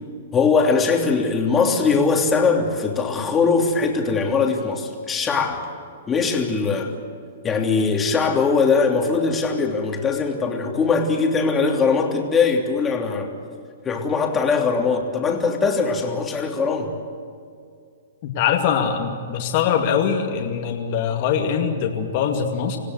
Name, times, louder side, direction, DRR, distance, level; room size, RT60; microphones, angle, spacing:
voice 1, 0.3-5.7 6.1-6.9 7.4-13.3 13.8-16.9, left 4 dB, 15° left, 1 dB, 3.1 m, -21 dB
voice 2, 18.2-22.8, left 7 dB, 45° left, 2 dB, 2.5 m, -22 dB
26.5 x 17.0 x 8.2 m, 2.2 s
hypercardioid pair, 145°, 0 cm